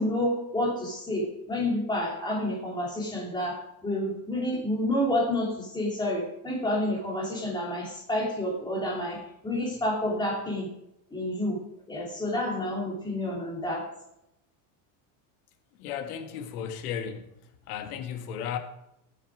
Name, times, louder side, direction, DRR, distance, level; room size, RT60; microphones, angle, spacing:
voice 1, 0.0-10.7 11.1-11.6 11.9-13.9, left 1 dB, 10° left, 3.0 m, -29 dB
voice 2, 15.8-17.3 17.7-18.6, left 8 dB, 80° left, 1.8 m, -34 dB
15.5 x 7.4 x 4.9 m
cardioid pair, 165°, 45 cm